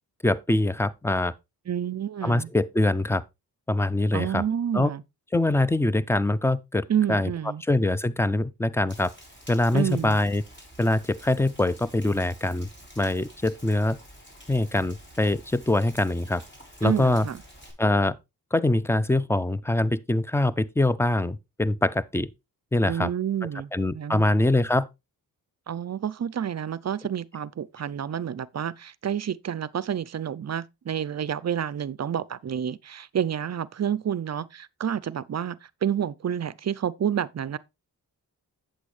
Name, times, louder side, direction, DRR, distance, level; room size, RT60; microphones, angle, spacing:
voice 1, 0.2-1.3 2.2-3.2 3.7-4.4 4.7-4.9 5.3-7.3 7.7-9.1 9.5-10.4 10.8-12.7 13.0-14.0 14.5-16.4 16.8-17.3 17.8-18.2 18.5-22.3 22.7-23.1 23.7-24.9, left 2 dB, 5° left, 0.5 m, -23 dB
voice 2, 1.7-2.5 4.1-5.0 6.9-7.6 9.7-10.2 16.8-17.4 22.9-24.2 25.7-37.6, right 9 dB, 45° right, 0.5 m, -29 dB
Rain, 8.9-17.7, equal, 25° left, 4.1 m, -49 dB
8.3 x 7.7 x 3.2 m
cardioid pair, 65°, 40 cm